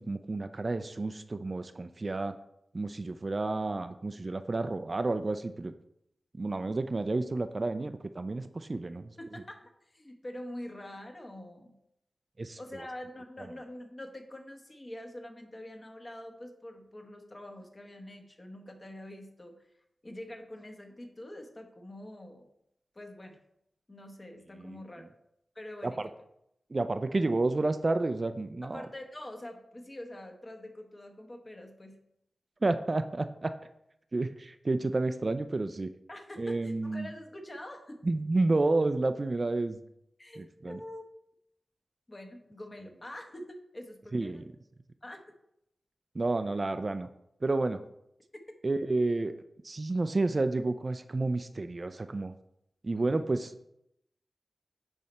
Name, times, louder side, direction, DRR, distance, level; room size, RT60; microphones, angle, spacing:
voice 1, 0.0-2.3 2.7-5.7 6.3-9.1 12.4-12.9 24.6-24.8 25.8-26.1 26.7-28.9 32.6-33.5 34.1-35.9 36.4-37.1 38.0-39.8 40.4-40.8 44.1-44.4 46.1-47.1 47.4-47.8 48.6-49.3 49.6-52.3 52.8-53.5, right 2 dB, 45° right, 10 dB, 0.4 m, -30 dB
voice 2, 9.2-11.8 12.6-19.6 20.0-22.5 22.9-23.4 23.9-25.0 25.5-26.0 28.7-32.0 36.1-38.0 40.2-41.0 42.1-44.5 45.0-45.3 53.0-53.1, left 1 dB, 35° left, 4 dB, 1.1 m, -45 dB
9.4 x 3.3 x 4.2 m, 0.79 s
wide cardioid pair, 65°, 0 cm